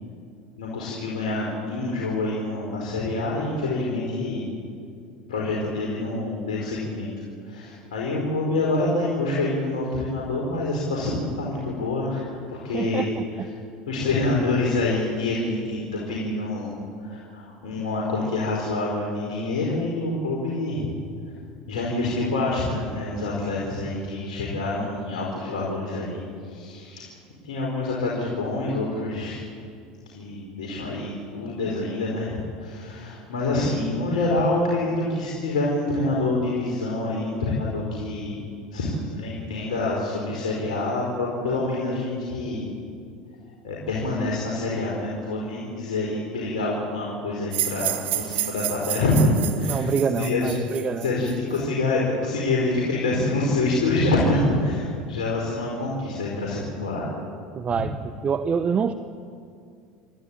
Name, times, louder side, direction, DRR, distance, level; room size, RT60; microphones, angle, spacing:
voice 1, 0.6-4.4 5.3-7.1 7.4-13.4 13.9-20.9 21.7-26.2 26.5-27.1 27.4-29.4 30.1-38.4 38.7-42.7 43.6-50.6 51.0-57.1 57.7-57.8, left 2 dB, 85° left, -3 dB, 4.8 m, -26 dB
voice 2, 12.7-13.1 49.6-51.1 57.6-58.0 58.2-58.9, right 6 dB, 35° right, 10 dB, 1.0 m, -25 dB
sound 1, 47.5-51.6, right 12 dB, 55° right, 1.8 m, -30 dB
29.5 x 14.0 x 8.9 m, 2.3 s
hypercardioid pair, 90°, 4 cm